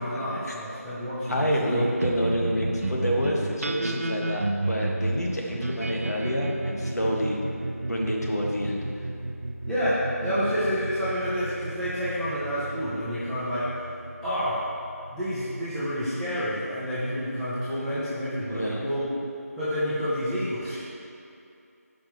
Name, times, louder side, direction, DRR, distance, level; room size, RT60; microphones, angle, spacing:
voice 1, 0.0-1.8 9.7-13.8 14.2-14.7 15.1-19.1 19.6-20.8, equal, 5° left, -14 dB, 0.6 m, -29 dB
voice 2, 1.3-7.4 7.9-8.8 10.2-10.4 18.4-18.8, equal, 80° left, -2 dB, 1.6 m, -28 dB
sound 1, 2.0-16.7, right 2 dB, 60° right, 0.5 m, -33 dB
14.0 x 5.2 x 3.1 m, 2.6 s
figure-of-eight pair, 170°, 9 cm